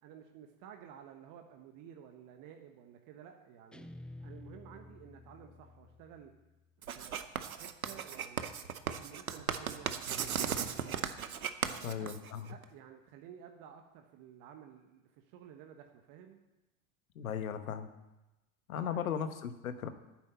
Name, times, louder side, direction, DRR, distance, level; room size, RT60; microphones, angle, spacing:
voice 1, 0.0-3.9 4.2-6.3 6.8-8.5 8.8-10.8 11.6-12.1 12.5-16.4 18.8-19.1, right 9 dB, 50° right, 5 dB, 1.2 m, -53 dB
Guitar, 3.7-6.9, left 2 dB, ahead, 0.3 m, -52 dB
Writing, 6.8-12.6, right 7 dB, 90° right, 0.8 m, -36 dB
voice 2, 11.8-12.5 17.1-17.9 18.7-19.9, left 8 dB, 80° left, 10 dB, 1.1 m, -37 dB
9.5 x 7.4 x 8.9 m, 1.0 s
hypercardioid pair, 80°, 41 cm